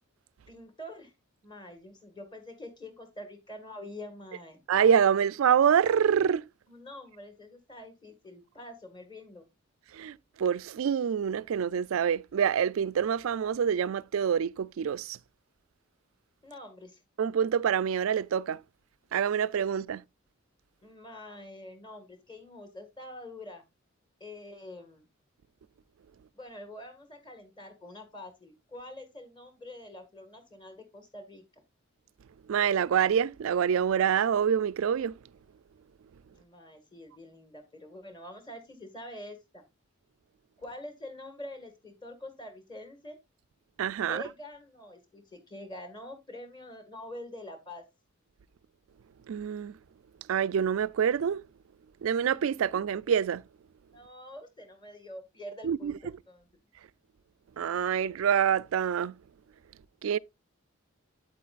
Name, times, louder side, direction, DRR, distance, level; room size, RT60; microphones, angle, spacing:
voice 1, 0.5-1.1 1.4-4.6 6.7-9.4 16.4-17.0 20.8-23.6 24.2-25.0 26.3-31.6 36.3-39.6 40.6-43.2 44.0-47.8 53.9-56.5, left 1 dB, 20° left, 1.7 m, -46 dB
voice 2, 4.7-6.4 9.9-15.2 17.2-18.6 19.1-20.0 32.5-35.1 43.8-44.2 49.3-49.7 50.3-51.4 52.0-53.4 55.6-56.0 57.6-59.2 60.0-60.2, right 8 dB, 80° right, 0.4 m, -26 dB
8.5 x 8.5 x 2.4 m
head